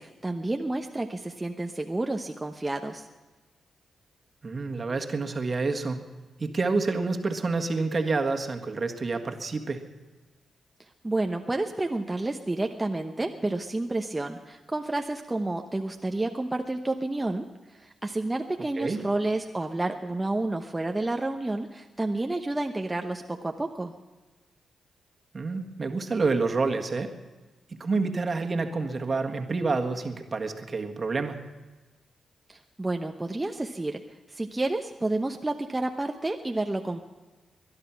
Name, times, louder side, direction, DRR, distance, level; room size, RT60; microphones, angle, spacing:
voice 1, 0.0-3.1 11.0-23.9 32.5-34.0 34.3-37.0, right 2 dB, 20° right, 4 dB, 0.9 m, -30 dB
voice 2, 4.4-6.0 6.4-9.8 18.8-19.0 25.3-27.1 27.8-31.4, right 3 dB, 45° right, 5 dB, 1.6 m, -28 dB
21.5 x 10.5 x 6.0 m, 1.3 s
supercardioid pair, 50°, 0 cm